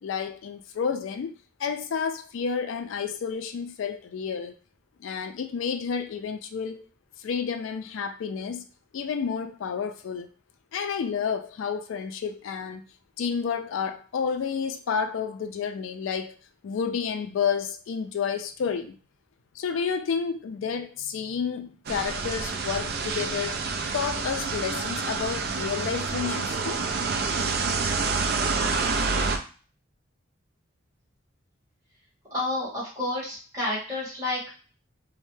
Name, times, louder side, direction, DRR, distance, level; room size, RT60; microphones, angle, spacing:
voice 1, 0.0-1.3 1.6-4.5 5.0-6.8 7.2-8.6 8.9-10.3 10.7-12.8 13.2-16.4 16.6-18.9 19.6-23.6 23.9-26.8, left 6 dB, 80° left, 8 dB, 0.3 m, -30 dB
sound 1, 21.9-29.4, right 4 dB, 50° right, 0.4 m, -28 dB
voice 2, 32.3-34.5, left 2 dB, 15° right, -6 dB, 1.5 m, -30 dB
3.1 x 2.1 x 3.1 m, 0.39 s
head